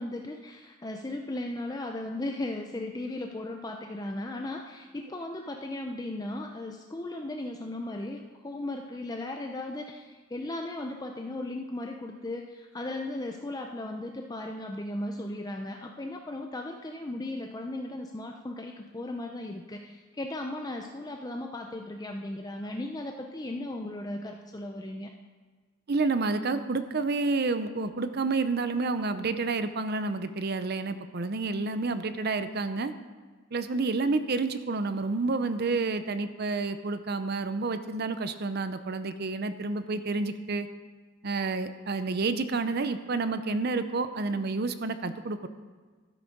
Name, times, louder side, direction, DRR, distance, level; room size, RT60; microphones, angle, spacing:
voice 1, 0.0-25.1, left 1 dB, 20° left, 3 dB, 0.5 m, -36 dB
voice 2, 25.9-32.9 33.5-40.7 41.2-45.5, right 3 dB, 50° right, 11 dB, 0.6 m, -29 dB
12.5 x 8.1 x 5.3 m, 1.4 s
head